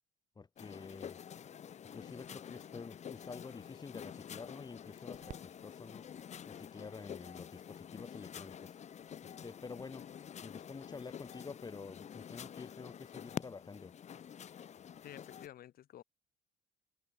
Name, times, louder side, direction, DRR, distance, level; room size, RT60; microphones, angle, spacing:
voice 1, 0.4-1.2 1.9-6.0 6.5-8.7 9.4-10.1 10.4-13.9, left 4 dB, 25° left, 3.4 m, -49 dB
sound 1, 0.6-15.5, left 8 dB, 45° left, 1.2 m, -48 dB
sound 2, 5.0-11.0, right 9 dB, 50° right, 7.8 m, -62 dB
voice 2, 15.0-16.0, left 12 dB, 60° left, 2.2 m, -51 dB
cardioid pair, 110°, 17 cm